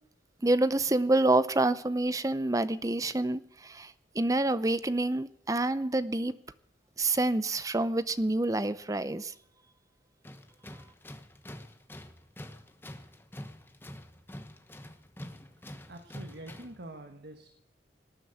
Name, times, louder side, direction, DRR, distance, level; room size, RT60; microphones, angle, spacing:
voice 1, 0.4-6.4 7.0-9.3, right 2 dB, 20° right, 15 dB, 0.6 m, -27 dB
Tools, 10.2-16.8, left 1 dB, 10° left, 1.1 m, -46 dB
voice 2, 15.6-17.6, right 1 dB, 70° right, 6 dB, 1.5 m, -46 dB
19.0 x 9.0 x 8.2 m, 0.76 s
head